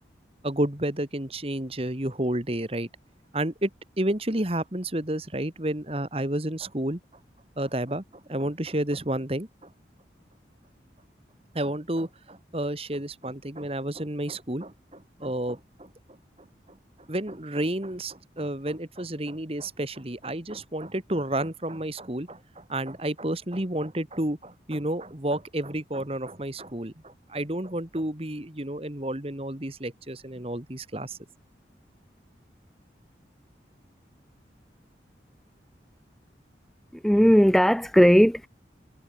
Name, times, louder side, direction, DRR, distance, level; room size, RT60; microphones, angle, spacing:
voice 1, 0.4-2.9 3.3-3.7 4.0-7.0 7.6-9.7 11.6-15.9 17.1-31.2, right 1 dB, 35° right, 1.9 m, -31 dB
voice 2, 36.9-38.5, equal, ahead, 0.5 m, -18 dB
head